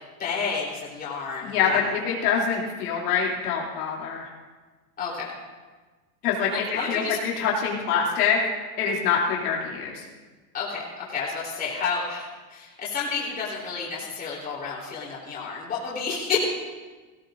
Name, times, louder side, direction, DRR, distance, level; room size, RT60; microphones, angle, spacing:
voice 1, 0.2-1.9 5.0-5.3 6.5-7.2 10.5-16.4, left 5 dB, 20° left, -5 dB, 3.6 m, -30 dB
voice 2, 1.4-4.3 6.2-8.4 8.8-10.1, left 6 dB, 70° left, -3 dB, 2.8 m, -25 dB
18.0 x 16.0 x 2.6 m, 1.3 s
supercardioid pair, 155°, 47 cm